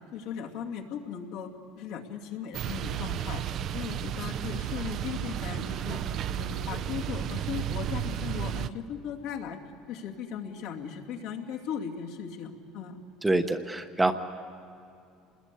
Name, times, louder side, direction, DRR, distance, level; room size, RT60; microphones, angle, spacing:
voice 1, 0.1-1.5 1.8-3.4 3.7-6.0 6.4-9.6 9.9-13.0, left 8 dB, 65° left, 1 dB, 2.5 m, -37 dB
sound 1, 2.5-8.7, right 9 dB, 40° right, 0.6 m, -33 dB
voice 2, 13.2-14.1, right 2 dB, 10° right, 6 dB, 0.9 m, -25 dB
28.0 x 21.0 x 8.4 m, 2.5 s
cardioid pair, 160°, 0 cm